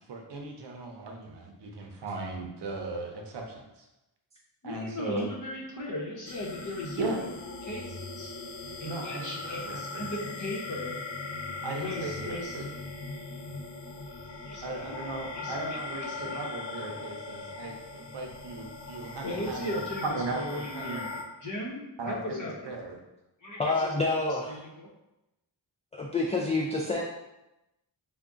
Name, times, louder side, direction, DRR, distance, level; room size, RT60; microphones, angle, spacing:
voice 1, 0.0-3.9 4.6-5.3 7.0-7.2 8.8-9.4 9.6-10.1 11.6-12.6 14.6-21.0 22.0-23.0, right 3 dB, 70° right, 2 dB, 0.7 m, -37 dB
voice 2, 4.6-7.3 7.6-8.3 8.8-11.0 11.8-12.6 14.5-15.0 15.3-16.4 19.2-22.7 23.4-24.9, left 1 dB, 45° left, -3 dB, 0.9 m, -37 dB
sound 1, 6.3-21.2, left 3 dB, 70° left, 0.6 m, -39 dB
voice 3, 23.6-24.6 25.9-27.0, left 3 dB, 15° left, -3 dB, 0.3 m, -28 dB
3.5 x 2.3 x 3.7 m, 0.94 s
wide cardioid pair, 125°, 43 cm